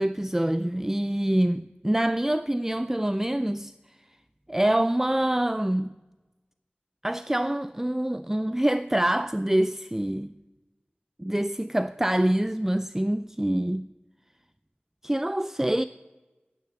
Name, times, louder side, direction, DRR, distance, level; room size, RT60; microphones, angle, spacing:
voice 1, 0.0-3.7 4.5-5.9 7.0-10.3 11.2-13.9 15.0-15.8, right 1 dB, 10° right, 0.3 m, -25 dB
9.1 x 8.7 x 7.6 m
wide cardioid pair, 45°, 4 cm